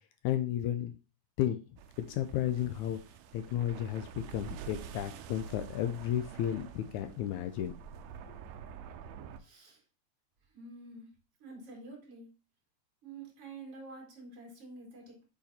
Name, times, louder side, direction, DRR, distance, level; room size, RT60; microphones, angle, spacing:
voice 1, 0.2-0.9 1.4-1.6 2.1-3.0 3.3-7.7, left 11 dB, 80° left, 9 dB, 1.8 m, -33 dB
sound 1, 1.8-9.4, right 8 dB, 85° right, 1.6 m, -47 dB
voice 2, 9.4-9.8 10.5-11.1 11.4-12.3 13.0-15.3, right 3 dB, 45° right, -2 dB, 4.1 m, -48 dB
8.6 x 4.2 x 4.0 m, 0.33 s
omnidirectional pair, 3.7 m